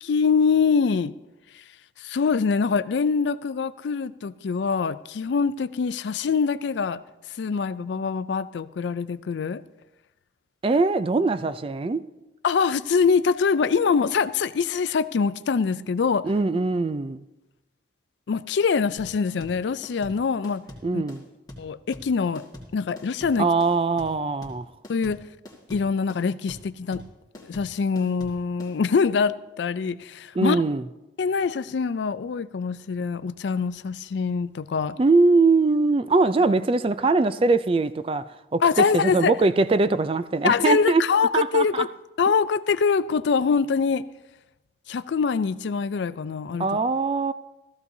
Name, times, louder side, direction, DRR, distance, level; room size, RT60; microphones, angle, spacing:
voice 1, 0.0-1.1 1.5-1.6 2.0-7.0 7.4-9.6 12.4-16.3 18.3-20.6 20.9-21.0 21.6-22.4 22.7-23.5 24.9-25.2 25.7-27.0 27.4-30.6 31.2-35.0 38.6-39.3 40.4-41.9 42.2-44.1 44.9-46.7, left 5 dB, 75° left, 0.4 m, -24 dB
voice 2, 10.6-12.0 16.2-17.2 20.8-21.2 23.4-24.7 30.4-30.8 35.0-38.2 38.5-41.0 41.3-41.9 46.6-47.3, right 3 dB, 30° right, 0.3 m, -22 dB
sound 1, 19.0-28.7, left 1 dB, 20° left, 1.7 m, -43 dB
15.0 x 14.0 x 2.7 m
head